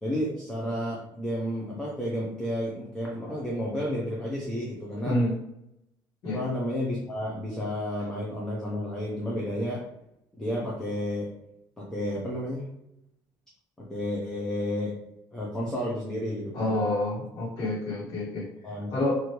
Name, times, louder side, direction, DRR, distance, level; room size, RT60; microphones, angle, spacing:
voice 1, 0.0-5.2 6.2-9.8 10.3-11.3 11.8-12.7 13.8-15.0 15.3-16.8 18.6-18.9, equal, 5° left, -5 dB, 0.5 m, -31 dB
voice 2, 16.5-18.5 18.9-19.2, left 1 dB, 60° left, -8 dB, 1.2 m, -28 dB
3.1 x 2.5 x 2.8 m, 0.82 s
cardioid pair, 170°, 7 cm